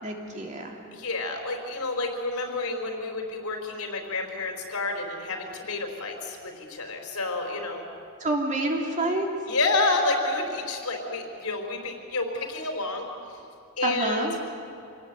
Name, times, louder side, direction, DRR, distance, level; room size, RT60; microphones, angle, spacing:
voice 1, 0.0-0.8 8.2-9.3 13.8-14.3, right 2 dB, 35° right, 0 dB, 3.2 m, -27 dB
voice 2, 0.9-7.8 9.5-13.1 13.8-14.3, left 2 dB, 80° left, 3 dB, 4.3 m, -29 dB
27.0 x 18.5 x 8.2 m, 2.9 s
head